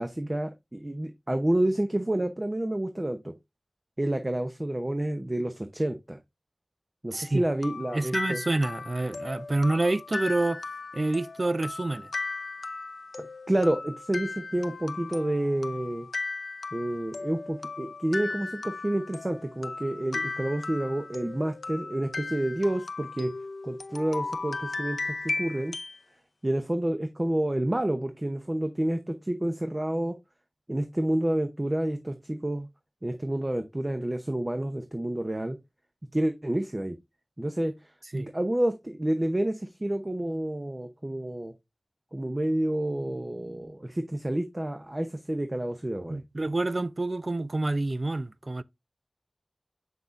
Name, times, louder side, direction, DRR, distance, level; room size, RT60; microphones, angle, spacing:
voice 1, 0.0-3.3 4.0-6.2 7.0-8.4 13.2-16.1 16.7-23.3 23.6-25.8 26.4-30.2 30.7-32.7 33.0-35.6 36.1-37.0 37.4-37.7 38.1-41.5 42.1-46.2, right 1 dB, 30° right, 0.7 m, -29 dB
sound 1, 7.1-26.0, left 3 dB, 80° left, 0.5 m, -37 dB
voice 2, 7.1-7.4 7.9-10.6 10.9-12.1 38.1-38.3 46.1-48.6, right 2 dB, 50° right, 0.4 m, -28 dB
7.1 x 5.9 x 2.5 m
wide cardioid pair, 60°, 0 cm